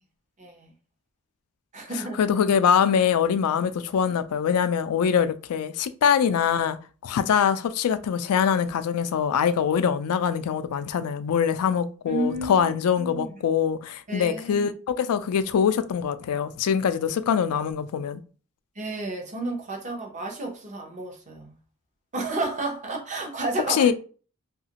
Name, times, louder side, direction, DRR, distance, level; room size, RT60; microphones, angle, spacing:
voice 1, 0.4-0.7 1.7-2.2 12.1-13.3 14.1-14.7 18.8-21.6 22.1-23.9, right 2 dB, 35° right, 0.7 m, -31 dB
voice 2, 2.2-6.8 7.0-18.2 23.7-23.9, left 7 dB, 90° left, 0.3 m, -23 dB
2.8 x 2.4 x 2.8 m
head